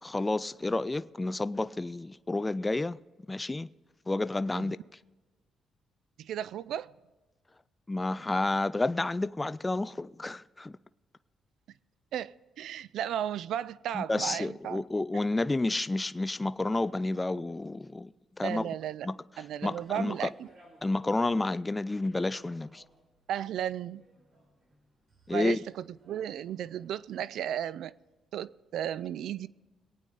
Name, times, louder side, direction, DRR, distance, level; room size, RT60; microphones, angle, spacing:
voice 1, 0.0-3.0 3.3-3.7 4.1-4.8 7.9-10.8 13.9-18.1 18.4-18.7 19.0-19.2 19.6-20.3 20.8-22.8 25.3-25.6, left 2 dB, 15° left, 0.3 m, -30 dB
voice 2, 6.2-6.9 12.1-14.8 18.4-19.1 19.4-20.5 23.3-24.0 25.3-27.9 28.3-29.5, right 10 dB, 75° right, 0.4 m, -35 dB
sound 1, 19.6-27.3, right 1 dB, 55° right, 5.1 m, -63 dB
22.5 x 9.1 x 3.9 m
cardioid pair, 90°, 0 cm